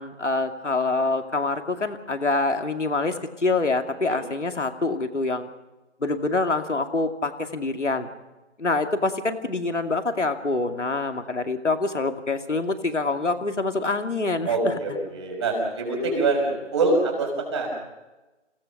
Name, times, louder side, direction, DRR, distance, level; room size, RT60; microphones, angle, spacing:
voice 1, 0.0-5.5 6.0-8.1 8.6-14.7, left 3 dB, 70° left, 6 dB, 2.5 m, -26 dB
voice 2, 14.4-17.7, right 3 dB, 25° right, 0 dB, 5.9 m, -24 dB
29.5 x 18.0 x 6.0 m, 1.1 s
figure-of-eight pair, 165°, 37 cm